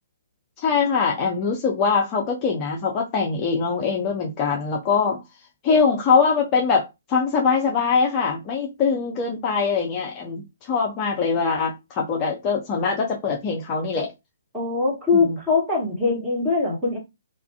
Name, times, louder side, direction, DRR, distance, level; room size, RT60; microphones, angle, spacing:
voice 1, 0.6-5.2 5.6-14.1 15.1-15.4, left 5 dB, 25° left, 0.4 m, -22 dB
voice 2, 14.5-17.0, left 4 dB, 10° right, 1.2 m, -22 dB
2.4 x 2.3 x 2.2 m
figure-of-eight pair, 130°, 0 cm